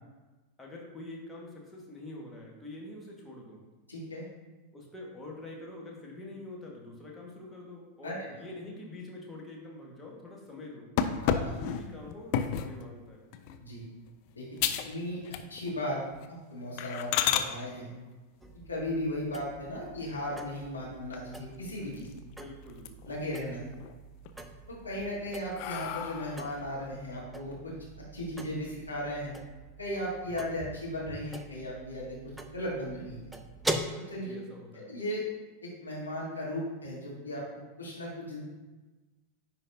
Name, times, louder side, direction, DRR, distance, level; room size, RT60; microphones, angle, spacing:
voice 1, 0.6-3.6 4.7-11.2 11.6-13.3 14.6-14.8 22.2-22.9 34.1-34.9, left 2 dB, 10° left, -3 dB, 1.5 m, -45 dB
voice 2, 3.9-4.3 8.0-8.3 11.2-11.5 13.6-13.8 14.4-14.5 14.8-15.2 15.5-16.0 16.3-17.9 18.7-22.1 23.1-23.6 24.7-27.7 28.1-29.3 29.8-33.2 34.0-34.3 34.7-35.2 35.6-37.4 37.8-38.4, left 1 dB, 80° left, -6 dB, 2.0 m, -36 dB
sound 1, 11.0-12.8 13.3-13.6 14.1-14.2 14.6-14.9 15.2-15.8 16.1-16.3 16.8-17.5 19.5-20.2 20.6-20.7 21.1-21.2 21.5-22.3 22.7-23.3 23.7-24.3 24.8-26.5, left 9 dB, 45° left, 0.4 m, -32 dB
sound 2, 18.4-33.9, right 1 dB, 5° right, 0.5 m, -43 dB
9.8 x 3.9 x 2.7 m, 1.2 s
figure-of-eight pair, 90°, 0 cm